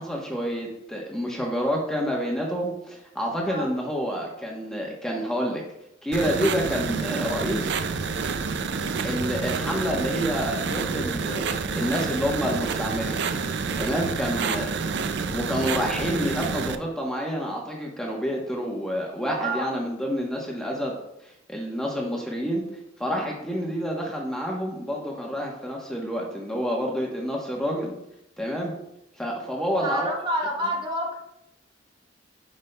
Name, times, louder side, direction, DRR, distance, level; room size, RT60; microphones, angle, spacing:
voice 1, 0.0-5.6 6.0-7.8 9.0-11.4 11.7-13.2 13.8-14.7 15.3-20.9 21.5-22.6 23.0-27.9 28.4-28.7 29.2-30.1, equal, 5° left, -2 dB, 0.9 m, -28 dB
sound 1, 6.1-16.8, right 5 dB, 65° right, 0.5 m, -28 dB
voice 2, 29.8-31.2, right 1 dB, 25° right, 0 dB, 1.1 m, -28 dB
9.3 x 5.2 x 2.2 m, 0.81 s
head